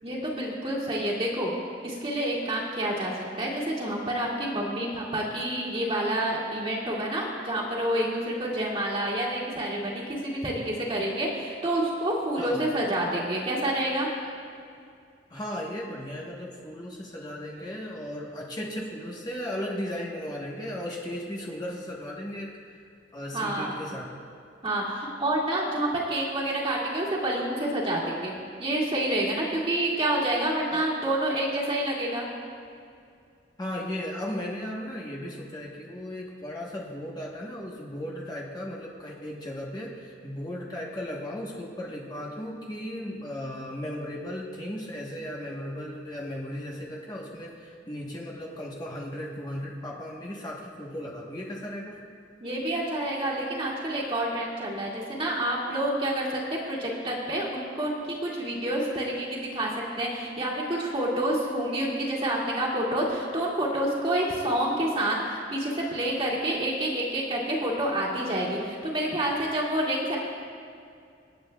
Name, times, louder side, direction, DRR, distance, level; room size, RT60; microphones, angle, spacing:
voice 1, 0.0-1.5 1.8-14.1 23.3-23.8 24.6-28.3 28.6-32.3 52.4-59.7 60.0-70.2, right 1 dB, 30° right, -5 dB, 2.0 m, -28 dB
voice 2, 12.3-12.6 14.2-14.3 15.3-22.6 23.1-24.1 30.7-30.9 33.6-52.0, left 1 dB, 20° left, -3 dB, 1.1 m, -36 dB
26.0 x 8.7 x 2.3 m, 2.3 s
head